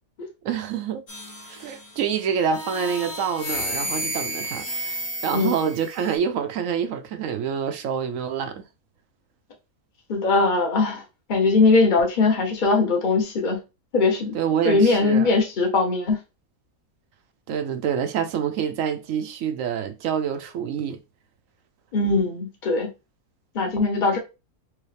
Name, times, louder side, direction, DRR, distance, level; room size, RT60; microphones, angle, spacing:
voice 1, 0.4-1.0 1.5-8.6 14.3-15.3 17.5-21.0, right 7 dB, 70° right, 0.9 m, -27 dB
sound 1, 1.1-2.0 2.5-6.2, equal, 75° left, 1.8 m, -32 dB
voice 2, 10.1-11.0 11.3-13.6 13.9-14.3 14.6-16.2 21.9-22.9 23.5-24.2, left 3 dB, 35° left, 1.1 m, -20 dB
4.7 x 2.6 x 3.3 m
omnidirectional pair, 1.5 m